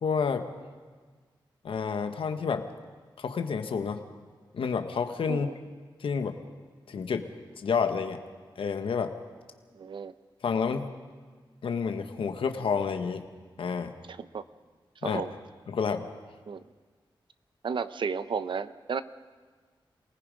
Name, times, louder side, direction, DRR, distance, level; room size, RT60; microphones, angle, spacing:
voice 1, 0.0-0.5 1.6-2.7 3.2-4.0 4.5-5.5 6.0-6.4 6.9-7.3 7.6-8.2 8.6-9.1 10.4-10.9 11.6-13.2 13.6-13.9 15.0-15.2 15.7-16.0, left 6 dB, 85° left, 7 dB, 1.2 m, -29 dB
voice 2, 9.7-10.1 14.1-14.4 15.0-15.3 16.5-16.6 17.6-19.0, right 6 dB, 65° right, 13 dB, 0.7 m, -33 dB
28.0 x 19.0 x 5.2 m, 1.5 s
wide cardioid pair, 115°, 9 cm